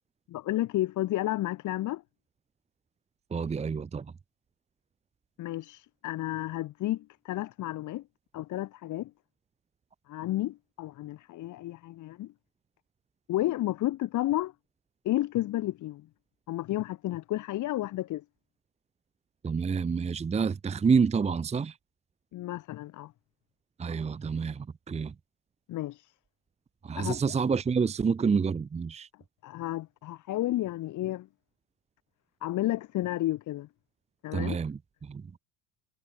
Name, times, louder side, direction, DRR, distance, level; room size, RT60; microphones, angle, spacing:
voice 1, 0.3-2.0 5.4-8.0 8.3-9.1 10.1-12.3 13.3-14.5 15.0-16.1 16.5-18.2 22.3-23.1 25.7-26.1 26.9-27.2 29.4-31.3 32.4-33.7 34.2-34.6, left 15 dB, 55° left, 4.6 m, -31 dB
voice 2, 3.3-4.1 19.4-21.7 23.8-25.1 26.8-29.1 34.3-34.8 35.1-35.2, right 5 dB, 20° right, 1.0 m, -28 dB
cardioid pair, 120°, 35 cm